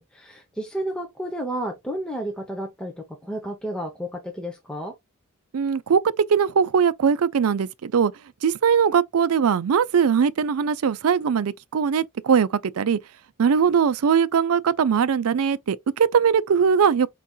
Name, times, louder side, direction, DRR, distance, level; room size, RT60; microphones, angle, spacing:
voice 1, 0.0-4.9, right 1 dB, 5° left, 0.7 m, -32 dB
voice 2, 5.5-8.1 8.4-13.0 13.4-17.1, right 6 dB, 80° right, 0.4 m, -20 dB
4.5 x 4.0 x 2.2 m
head